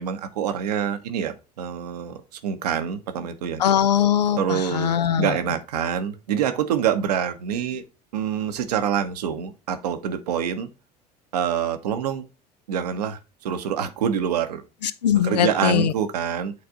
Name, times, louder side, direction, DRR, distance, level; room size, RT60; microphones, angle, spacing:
voice 1, 0.0-3.6 4.4-7.8 8.1-10.7 11.3-12.3 12.7-14.6 15.2-16.5, right 8 dB, 75° right, 0.9 m, -26 dB
voice 2, 3.6-5.4 14.8-15.9, left 10 dB, 80° left, 0.6 m, -21 dB
8.6 x 3.4 x 3.7 m
figure-of-eight pair, 70°, 21 cm